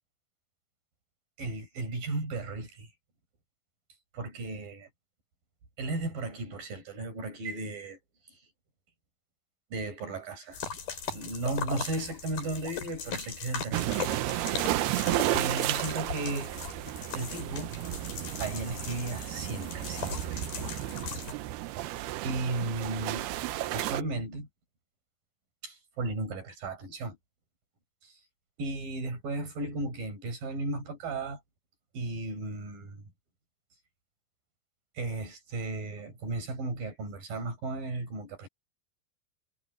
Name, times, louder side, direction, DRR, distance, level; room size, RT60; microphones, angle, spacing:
voice 1, 1.4-2.9 4.1-4.9 5.8-8.0 8.3-8.4 9.7-10.6 11.1-14.7 15.3-16.5 17.1-17.8 18.4-20.4 21.1-21.2 22.2-23.3 23.7-24.5 25.6-27.2 28.0-28.2 28.6-31.4 31.9-33.0 34.9-38.5, right 2 dB, 60° right, 8.5 m, -35 dB
sound 1, 10.5-21.3, left 6 dB, 65° left, 6.2 m, -39 dB
sound 2, 13.7-24.0, right 15 dB, 85° right, 2.9 m, -33 dB
omnidirectional pair, 4.5 m